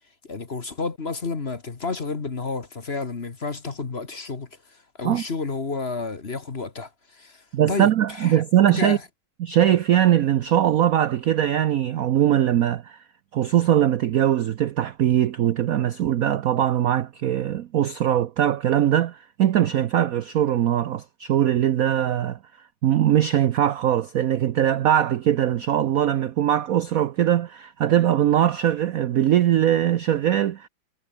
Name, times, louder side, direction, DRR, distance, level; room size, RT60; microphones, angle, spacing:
voice 1, 0.2-4.5 5.0-8.4 8.7-9.0, left 4 dB, 30° left, 1.6 m, -31 dB
voice 2, 7.5-9.0 9.4-13.0 13.3-22.4 22.8-30.7, right 11 dB, 70° right, 0.8 m, -21 dB
omnidirectional pair, 2.3 m